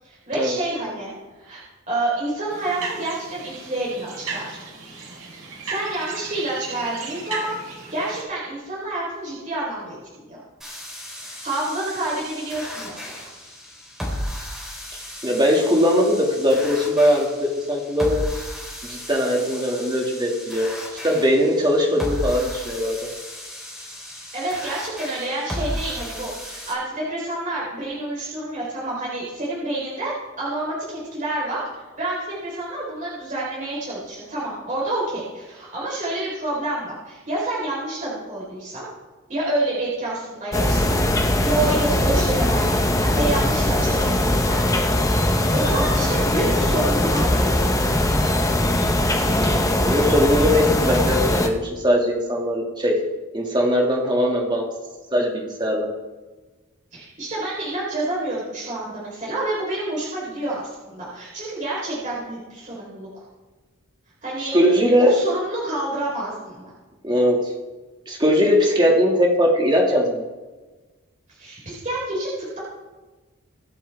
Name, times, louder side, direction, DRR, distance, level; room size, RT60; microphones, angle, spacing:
voice 1, 0.0-1.1 1.4-1.6 1.9-4.6 5.6-7.6 7.9-10.4 11.2-13.2 19.3-19.6 24.1-31.6 32.0-38.9 39.3-41.0 41.3-44.6 45.3-48.1 56.9-63.3 64.2-64.5 65.0-66.7 71.3-72.6, right 2 dB, 35° right, -7 dB, 4.2 m, -28 dB
sound 1, 2.5-8.2, right 4 dB, 90° right, 4.7 m, -35 dB
sound 2, 10.6-26.7, equal, ahead, 3.8 m, -34 dB
voice 2, 15.2-18.3 18.9-20.7 21.0-23.1 49.3-53.1 53.3-54.7 55.1-55.9 64.5-65.1 67.0-67.5 68.1-70.3, equal, 20° right, 0 dB, 2.3 m, -20 dB
sound 3, 40.5-51.5, left 1 dB, 15° left, 1.0 m, -20 dB
24.5 x 8.4 x 3.6 m, 1.2 s
head